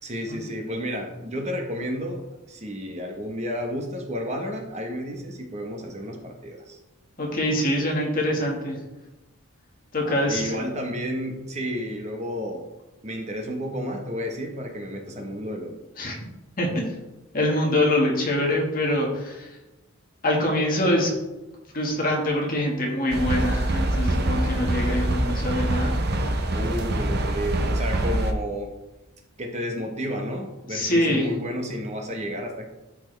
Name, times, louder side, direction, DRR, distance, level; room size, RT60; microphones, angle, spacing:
voice 1, 0.0-6.8 10.0-12.6 13.0-15.8 26.5-28.7 29.4-32.7, equal, 30° right, 2 dB, 1.1 m, -31 dB
voice 2, 7.2-8.8 9.9-10.6 16.0-16.1 16.6-16.9 17.3-19.5 20.2-21.1 21.7-26.0 30.7-31.3, left 1 dB, 40° left, -1 dB, 1.7 m, -24 dB
sound 1, 23.1-28.3, right 1 dB, 45° right, 0.8 m, -24 dB
12.5 x 4.4 x 3.3 m, 1.0 s
head